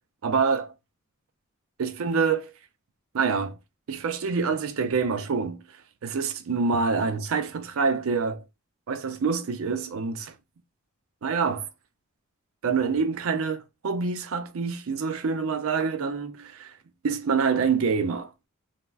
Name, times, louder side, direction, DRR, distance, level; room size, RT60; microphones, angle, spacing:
voice 1, 0.2-0.7 1.8-2.5 3.1-3.6 3.9-5.6 6.0-8.4 8.9-10.3 11.2-11.7 12.6-16.7 17.0-18.3, right 5 dB, 70° right, 0.4 m, -26 dB
3.2 x 2.1 x 2.3 m
head